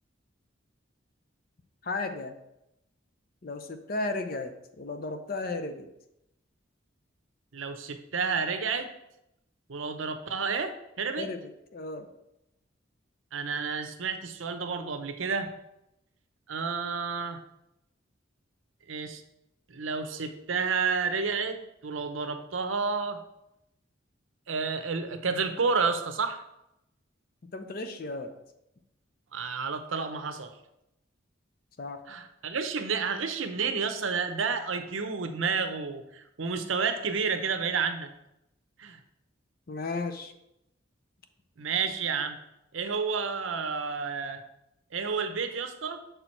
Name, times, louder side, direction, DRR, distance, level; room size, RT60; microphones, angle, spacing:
voice 1, 1.8-2.4 3.4-5.9 11.2-12.1 27.4-28.4 31.8-32.0 39.7-40.3, left 3 dB, 45° left, 8 dB, 0.6 m, -34 dB
voice 2, 7.5-8.9 9.7-11.3 13.3-15.5 16.5-17.4 18.9-19.2 19.7-21.6 21.8-23.2 24.5-26.4 29.3-30.5 32.1-38.1 38.8-39.0 41.6-42.4 42.7-44.4 44.9-46.0, right 5 dB, 85° right, 8 dB, 0.7 m, -30 dB
6.7 x 4.5 x 4.4 m, 0.84 s
head